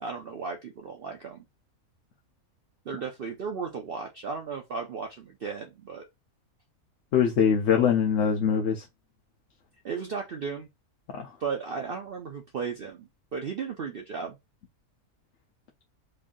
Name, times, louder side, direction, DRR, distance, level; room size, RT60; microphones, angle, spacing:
voice 1, 0.0-1.4 2.9-6.0 9.8-10.7 11.4-14.4, right 5 dB, 60° right, 0.6 m, -35 dB
voice 2, 7.1-8.9 11.1-11.3, left 7 dB, 60° left, 0.8 m, -23 dB
3.2 x 2.6 x 3.7 m
omnidirectional pair, 1.5 m